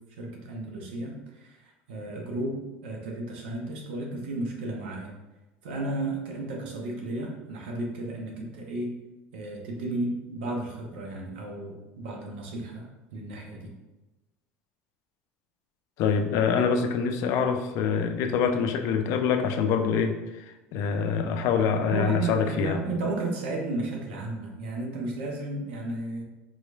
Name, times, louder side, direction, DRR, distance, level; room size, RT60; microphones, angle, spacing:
voice 1, 0.2-5.1 5.6-8.9 9.3-13.7 21.8-26.2, right 2 dB, 90° right, 0 dB, 0.7 m, -33 dB
voice 2, 16.0-20.1 20.7-22.8, left 6 dB, 65° left, 7 dB, 0.4 m, -25 dB
3.9 x 3.0 x 2.3 m, 1.1 s
supercardioid pair, 85°, 6 cm